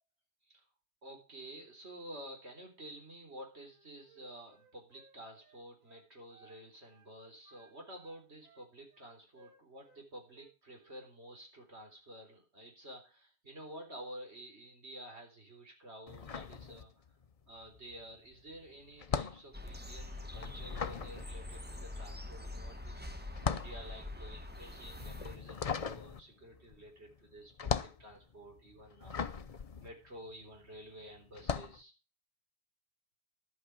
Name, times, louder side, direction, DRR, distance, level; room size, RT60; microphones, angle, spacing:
voice 1, 1.0-16.9 17.5-23.0 23.5-31.9, equal, 75° right, 2 dB, 4.2 m, -51 dB
Wind instrument woodwind instrument, 3.6-6.6 6.9-7.1 7.4-10.0 10.3-11.0, right 5 dB, 40° right, 4.4 m, -64 dB
sound 1, 16.1-17.3 17.6-30.8 31.3-31.8, left 6 dB, 40° left, 0.7 m, -39 dB
sound 2, 19.5-25.4, left 2 dB, 10° right, 1.2 m, -44 dB
12.0 x 8.4 x 6.2 m, 0.32 s
omnidirectional pair, 1.1 m